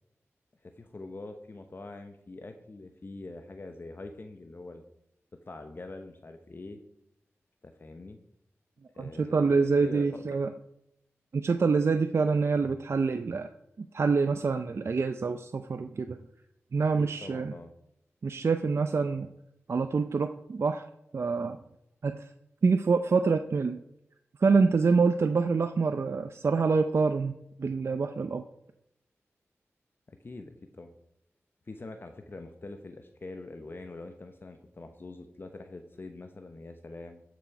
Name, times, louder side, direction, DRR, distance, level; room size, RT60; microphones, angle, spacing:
voice 1, 0.6-4.8 5.5-6.8 7.6-8.2 8.9-10.2 17.0-17.7 30.1-30.9 31.7-37.2, left 2 dB, 45° left, 6 dB, 0.9 m, -44 dB
voice 2, 9.0-10.5 11.3-13.5 13.8-16.2 16.7-17.5 18.2-19.3 19.7-20.9 21.1-21.6 22.0-22.2 22.6-23.8 24.4-27.3 27.6-28.4, right 4 dB, 60° right, 8 dB, 0.5 m, -26 dB
11.0 x 6.2 x 4.7 m, 0.79 s
wide cardioid pair, 65°, 5 cm